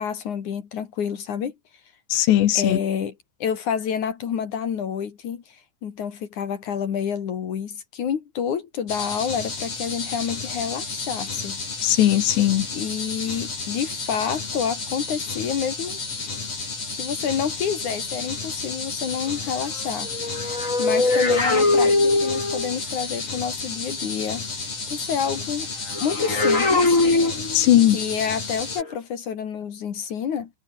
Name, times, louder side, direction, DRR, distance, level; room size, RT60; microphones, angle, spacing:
voice 1, 0.0-1.5 2.5-3.1 3.4-11.6 12.7-16.0 16.9-20.1 20.8-24.5 24.9-25.7 26.0-27.0 27.9-30.5, left 7 dB, 50° left, 2.9 m, -28 dB
voice 2, 2.1-2.8 11.8-12.7 27.5-28.0, left 13 dB, 75° left, 3.7 m, -18 dB
sound 1, 8.9-28.8, left 4 dB, 35° left, 6.5 m, -32 dB
sound 2, 20.0-22.8 25.9-27.9 28.7-28.9, left 2 dB, 20° left, 4.1 m, -21 dB
omnidirectional pair, 5.1 m